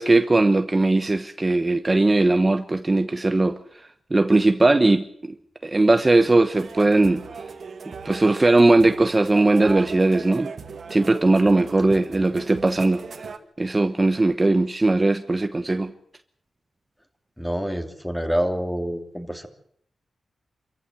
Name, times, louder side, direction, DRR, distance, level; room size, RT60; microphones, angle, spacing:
voice 1, 0.0-5.3 5.6-7.2 8.0-10.5 10.9-13.0 13.6-15.9, right 2 dB, 25° right, 1.0 m, -19 dB
sound 1, 6.5-13.4, right 5 dB, 65° right, 2.1 m, -38 dB
voice 2, 17.4-19.5, equal, 5° left, 3.0 m, -27 dB
26.0 x 15.0 x 7.8 m
cardioid pair, 70°, 0 cm